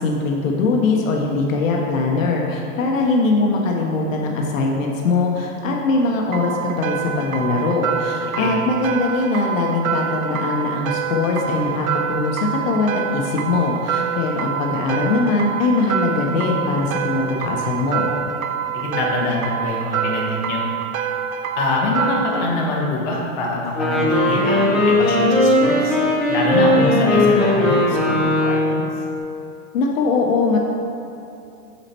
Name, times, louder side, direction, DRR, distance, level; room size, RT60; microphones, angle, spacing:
voice 1, 0.0-18.1 29.7-30.6, left 3 dB, 70° left, 0 dB, 1.0 m, -21 dB
sound 1, 6.3-22.5, right 8 dB, 80° right, 0.6 m, -26 dB
voice 2, 18.7-20.6 21.6-26.0 26.3-28.8, left 2 dB, 35° left, -4 dB, 1.2 m, -24 dB
Wind instrument woodwind instrument, 23.6-28.9, left 1 dB, ahead, 0.6 m, -17 dB
8.7 x 4.2 x 4.3 m, 2.6 s
supercardioid pair, 180°, 41 cm